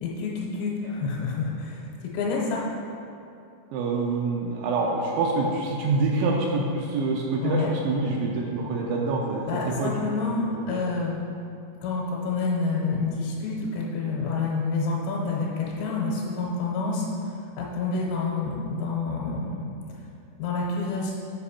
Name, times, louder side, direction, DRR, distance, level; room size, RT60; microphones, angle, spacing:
voice 1, 0.0-2.6 7.4-7.7 9.5-11.2 11.8-17.1 17.6-19.7 20.4-21.1, left 4 dB, 75° left, -4 dB, 2.9 m, -28 dB
voice 2, 3.7-9.4 9.8-10.8, right 3 dB, 80° right, -2 dB, 2.8 m, -26 dB
8.5 x 5.1 x 4.2 m, 2.6 s
omnidirectional pair, 5.5 m